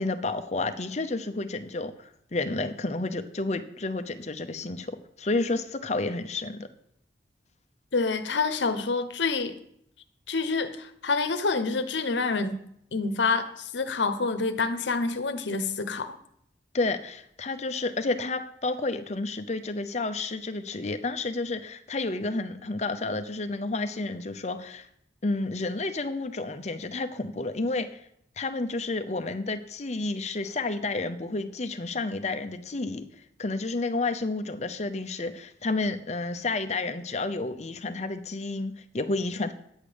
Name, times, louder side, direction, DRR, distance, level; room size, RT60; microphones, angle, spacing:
voice 1, 0.0-6.7 16.7-24.9 25.2-28.0 28.4-33.0 33.4-39.5, left 3 dB, 40° left, 9 dB, 0.7 m, -30 dB
voice 2, 7.9-9.5 10.3-12.6 12.9-16.2, left 4 dB, 85° left, 10 dB, 0.9 m, -27 dB
9.8 x 8.2 x 5.1 m, 0.72 s
head